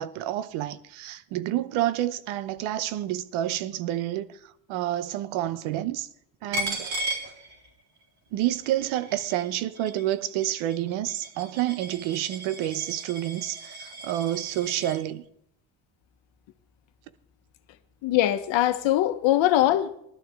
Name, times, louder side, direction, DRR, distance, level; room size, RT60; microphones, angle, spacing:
voice 1, 0.0-6.1 6.4-6.9 8.3-15.2, right 13 dB, 90° right, 0.8 m, -29 dB
Coin (dropping), 6.5-8.0 8.4-15.0, right 1 dB, 50° right, 4.2 m, -36 dB
voice 2, 18.0-20.0, left 14 dB, 70° left, 1.1 m, -22 dB
17.0 x 12.0 x 3.5 m
cardioid pair, 110°, 46 cm